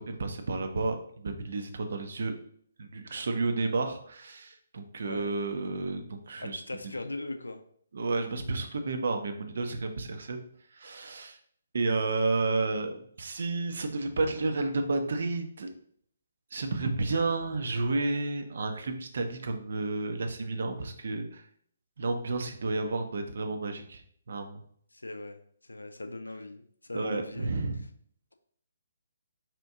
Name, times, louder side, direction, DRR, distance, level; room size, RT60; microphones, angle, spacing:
voice 1, 0.0-2.3 2.8-6.6 7.9-10.4 10.7-11.4 11.7-15.7 16.5-21.4 22.0-24.0 24.3-24.6 26.9-27.8, right 3 dB, 55° right, 6 dB, 0.6 m, -31 dB
voice 2, 6.4-7.6 24.9-25.4 25.6-27.5, left 2 dB, 75° left, 7 dB, 0.4 m, -39 dB
4.3 x 2.5 x 3.6 m, 0.63 s
figure-of-eight pair, 135°, 0 cm